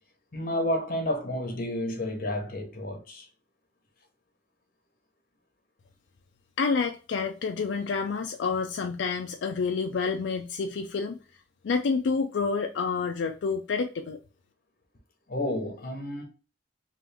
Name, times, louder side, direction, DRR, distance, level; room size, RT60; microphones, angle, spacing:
voice 1, 0.3-3.3 15.3-16.2, left 1 dB, 50° left, 1.0 m, -30 dB
voice 2, 6.6-11.2 11.6-14.2, left 5 dB, 80° left, 0.4 m, -28 dB
3.5 x 2.5 x 3.3 m
head